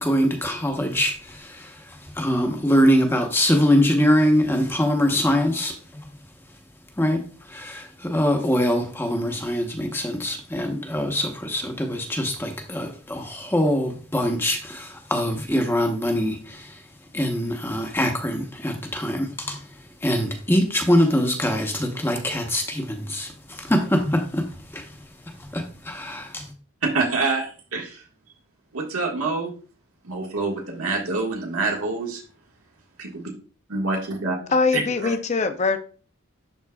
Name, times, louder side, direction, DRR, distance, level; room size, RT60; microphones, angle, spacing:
voice 1, 0.0-1.7 2.2-5.7 7.0-7.2 7.5-16.7 17.1-19.6 20.0-24.4 24.7-24.8 25.5-26.4, equal, 10° left, 3 dB, 0.9 m, -23 dB
voice 2, 26.8-28.0 28.7-29.5 30.0-32.2 33.0-33.1 33.7-34.3 34.7-35.1, right 3 dB, 90° right, -1 dB, 1.6 m, -26 dB
voice 3, 34.5-35.8, left 4 dB, 30° left, 8 dB, 0.5 m, -22 dB
11.5 x 3.9 x 2.3 m, 0.38 s
head